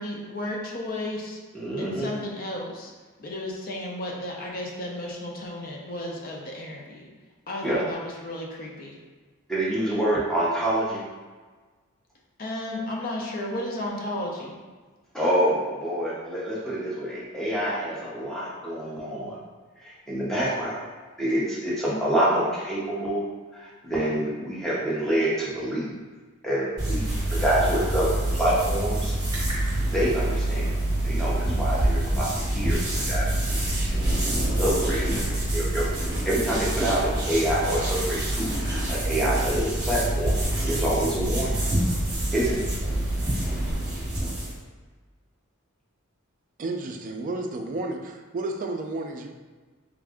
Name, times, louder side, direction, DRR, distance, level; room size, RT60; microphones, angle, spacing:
voice 1, 0.0-1.4 1.8-2.9 3.2-7.1 7.5-9.0 12.4-14.6, left 1 dB, 40° left, -2 dB, 0.6 m, -33 dB
voice 2, 1.5-2.1 7.6-7.8 9.5-11.0 15.1-19.4 19.8-20.9 21.2-23.2 23.5-25.9 26.4-29.1 29.8-30.7 31.0-32.8 33.1-33.3 33.7-33.9 34.6-35.9 36.2-40.4 40.6-41.6 42.3-42.7, right 1 dB, ahead, -8 dB, 0.8 m, -27 dB
sound 1, 26.8-44.6, right 1 dB, 20° right, 1.2 m, -26 dB
voice 3, 46.6-49.3, right 2 dB, 40° right, 4 dB, 0.3 m, -32 dB
3.5 x 2.5 x 3.4 m, 1.4 s
head